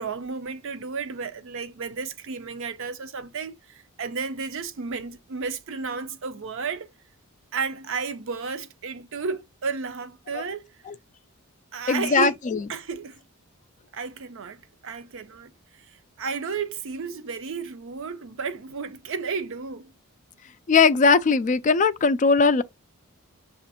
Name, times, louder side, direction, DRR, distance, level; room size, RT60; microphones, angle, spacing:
voice 1, 0.0-6.9 7.5-10.8 11.7-12.4 12.7-13.2 13.9-19.9, right 5 dB, 60° right, 0.6 m, -33 dB
voice 2, 11.9-12.6 20.7-22.6, left 4 dB, 35° left, 0.3 m, -19 dB
6.7 x 2.4 x 2.7 m
head